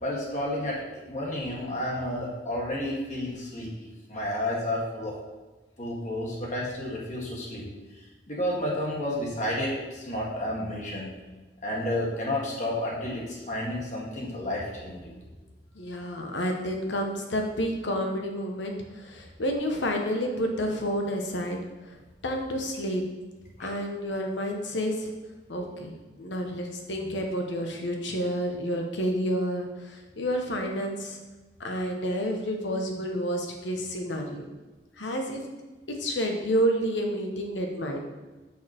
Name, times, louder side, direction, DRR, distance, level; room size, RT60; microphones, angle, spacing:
voice 1, 0.0-3.7 4.1-5.1 5.8-7.7 8.3-11.1 11.6-15.1 23.6-23.7 27.0-27.2, left 1 dB, 40° left, -4 dB, 1.8 m, -31 dB
voice 2, 15.7-21.6 22.2-23.0 23.6-25.1 25.5-25.9 26.2-31.2 31.6-34.4 35.0-35.4 35.9-38.0, equal, 85° left, 2 dB, 1.2 m, -29 dB
6.3 x 5.8 x 4.4 m, 1.2 s
head